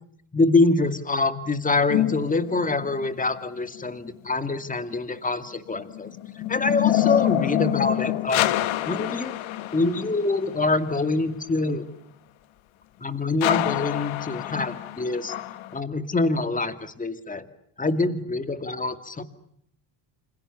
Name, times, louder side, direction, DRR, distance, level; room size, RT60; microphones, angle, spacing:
voice 1, 0.3-6.1 6.4-8.5 8.9-9.3 9.7-11.9 13.0-15.3 15.7-17.5 17.8-19.2, left 3 dB, 15° left, 10 dB, 2.3 m, -25 dB
sound 1, 1.9-3.2 5.7-10.5 13.4-15.8, left 14 dB, 75° left, 1.6 m, -26 dB
28.5 x 27.0 x 7.1 m, 0.71 s
cardioid pair, 125°, 48 cm